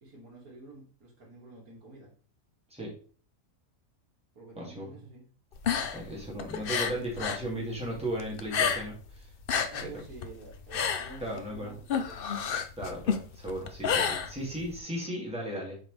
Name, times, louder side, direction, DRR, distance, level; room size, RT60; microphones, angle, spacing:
voice 1, 0.0-2.1 4.3-5.2 9.7-12.2, right 2 dB, 80° right, -2 dB, 2.7 m, -49 dB
voice 2, 4.6-4.9 5.9-9.3 9.8-9.9 11.2-11.7 12.8-15.8, right 1 dB, 5° right, -4 dB, 2.6 m, -36 dB
sound 1, 5.5-7.5 7.7-9.1 9.3-14.8, left 7 dB, 50° left, 0.7 m, -30 dB
7.5 x 5.2 x 3.4 m, 0.40 s
omnidirectional pair, 1.5 m